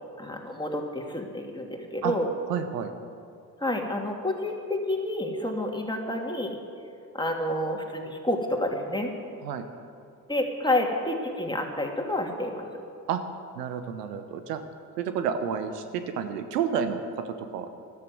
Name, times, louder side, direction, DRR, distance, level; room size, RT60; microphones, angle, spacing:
voice 1, 0.2-2.3 3.6-6.6 7.1-9.1 10.3-12.7, left 1 dB, 10° left, 2 dB, 2.9 m, -29 dB
voice 2, 2.5-2.9 9.4-9.7 13.1-13.2 13.5-14.6 15.0-17.7, right 7 dB, 85° right, 9 dB, 1.0 m, -30 dB
13.5 x 12.5 x 7.8 m, 2.5 s
hypercardioid pair, 50°, 47 cm